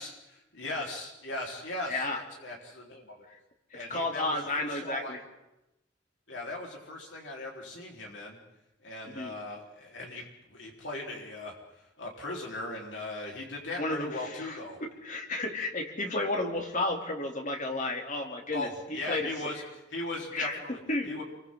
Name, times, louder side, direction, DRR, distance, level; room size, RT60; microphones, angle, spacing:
voice 1, 0.0-3.2 3.7-5.2 6.3-8.4 8.8-10.2 10.5-11.5 12.0-14.8 18.5-19.6 19.9-20.8 21.0-21.2, left 2 dB, 85° left, -1 dB, 4.1 m, -38 dB
voice 2, 1.9-2.2 3.7-5.2 9.1-9.3 13.8-19.3 20.3-20.6 20.9-21.1, left 2 dB, 45° left, 2 dB, 2.9 m, -32 dB
29.0 x 23.5 x 3.8 m, 0.92 s
head